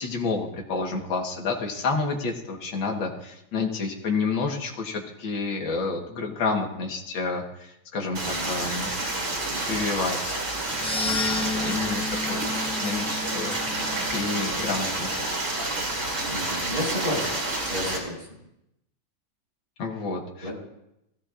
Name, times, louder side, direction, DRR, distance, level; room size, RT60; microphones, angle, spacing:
voice 1, 0.0-8.2 8.5-8.9 9.7-10.4 11.5-15.2 19.8-20.5, left 4 dB, 80° left, 1 dB, 2.2 m, -29 dB
voice 2, 8.0-8.6 11.0-11.7 16.3-17.3 17.7-18.3 20.4-20.5, left 1 dB, 30° right, -2 dB, 5.3 m, -33 dB
Stream, 8.2-18.0, right 2 dB, 80° right, 3.7 m, -29 dB
sound 1, 10.7-15.0, left 3 dB, 5° left, 0.4 m, -32 dB
16.5 x 16.0 x 2.5 m, 0.83 s
omnidirectional pair, 2.1 m